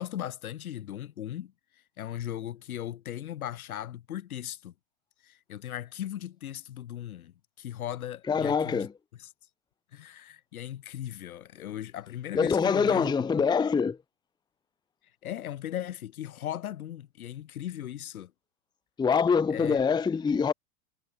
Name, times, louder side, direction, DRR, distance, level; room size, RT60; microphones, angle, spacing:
voice 1, 0.0-1.5 2.0-4.7 5.2-8.9 9.2-9.3 9.9-13.5 15.2-18.3 19.5-19.8, left 11 dB, 80° left, 4.1 m, -38 dB
voice 2, 8.3-8.9 12.3-14.0 19.0-20.5, left 6 dB, 10° left, 0.7 m, -24 dB
hypercardioid pair, 105°, 42 cm